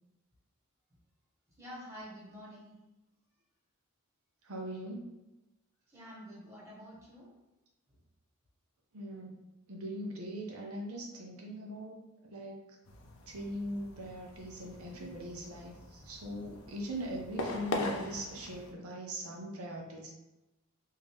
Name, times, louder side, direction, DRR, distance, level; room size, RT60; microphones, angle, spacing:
voice 1, 1.6-2.8 5.9-7.3 11.0-11.1, equal, 15° right, -6 dB, 1.4 m, -48 dB
voice 2, 4.4-5.0 8.9-9.3 9.7-12.6 13.3-20.1, equal, 85° right, -1 dB, 0.7 m, -41 dB
sound 1, 12.9-18.7, left 2 dB, 85° left, 0.6 m, -41 dB
3.6 x 2.7 x 3.5 m, 0.98 s
head